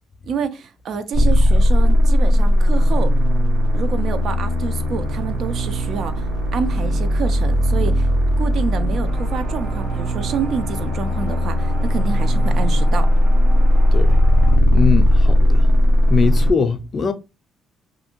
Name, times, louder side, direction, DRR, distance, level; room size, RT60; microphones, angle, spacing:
voice 1, 0.2-3.1 3.7-8.1 8.4-13.1, right 6 dB, 60° right, 0.4 m, -28 dB
sound 1, 1.1-16.5, equal, 90° right, 0.7 m, -17 dB
sound 2, 9.0-14.6, right 2 dB, 45° right, 0.8 m, -39 dB
voice 2, 13.9-14.2 14.7-15.8 16.1-17.1, left 5 dB, 35° left, 0.4 m, -21 dB
2.6 x 2.5 x 2.7 m
cardioid pair, 105°, 0 cm